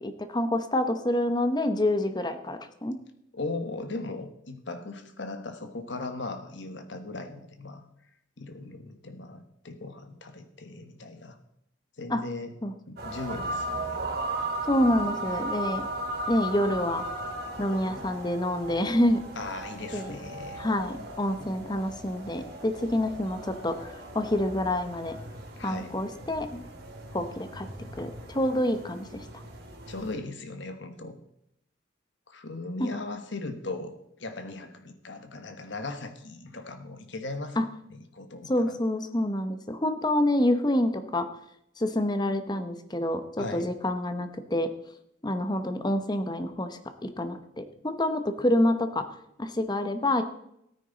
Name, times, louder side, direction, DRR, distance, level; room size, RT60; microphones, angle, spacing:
voice 1, 0.0-3.0 12.1-12.2 12.6-12.7 14.7-15.9 16.3-17.0 17.6-19.2 19.9-20.1 20.6-25.2 25.6-26.6 27.1-27.7 28.0-29.2 32.8-32.9 37.6-37.7 38.5-41.3 41.8-44.7 45.2-50.2, left 1 dB, 20° left, 9 dB, 0.8 m, -27 dB
voice 2, 3.3-7.8 8.4-11.4 12.0-12.5 12.9-14.0 19.3-20.6 25.6-25.9 29.9-31.1 32.3-33.9 34.2-37.6 37.9-38.8 43.4-43.7, left 2 dB, 60° left, 8 dB, 1.3 m, -38 dB
sound 1, 13.0-30.1, right 1 dB, 55° right, 2.1 m, -37 dB
14.0 x 9.5 x 4.0 m, 0.78 s
head